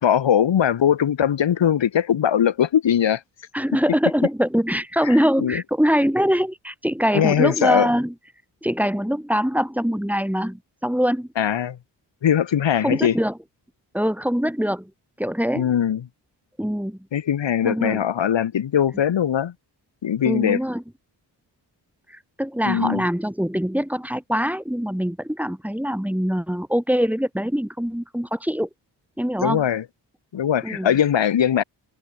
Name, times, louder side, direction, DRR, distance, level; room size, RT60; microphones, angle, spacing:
voice 1, 0.0-3.2 5.1-5.6 7.1-7.9 11.4-11.8 12.2-13.1 15.5-16.0 17.1-19.5 20.0-20.6 22.7-23.0 29.4-29.8 30.3-31.6, left 9 dB, 85° left, 4.3 m, -20 dB
voice 2, 3.5-8.1 8.6-11.3 12.8-13.4 13.9-14.9 15.2-15.7 16.6-17.0 17.6-18.0 20.2-20.8 22.1-28.7 29.2-29.7 30.6-31.0, equal, 5° right, 5.2 m, -23 dB
cardioid pair, 60°, 44 cm